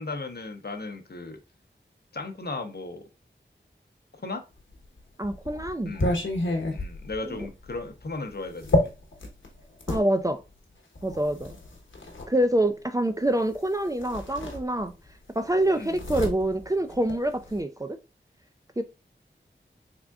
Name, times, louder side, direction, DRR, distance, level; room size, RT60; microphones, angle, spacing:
voice 1, 0.0-1.4 2.1-3.0 4.2-4.4 5.9-6.1 6.7-8.9 15.8-16.0, left 3 dB, 55° left, 0.7 m, -36 dB
sound 1, 4.7-10.1 11.0-12.3 13.5-13.7 14.0-15.1 15.4-17.6, left 1 dB, 85° left, 0.9 m, -30 dB
voice 2, 5.2-6.0 7.2-7.5 9.9-10.4 11.0-11.5 12.3-14.9 15.4-18.0 18.8-18.9, right 1 dB, 20° right, 0.3 m, -26 dB
3.5 x 3.5 x 2.3 m
wide cardioid pair, 65°, 19 cm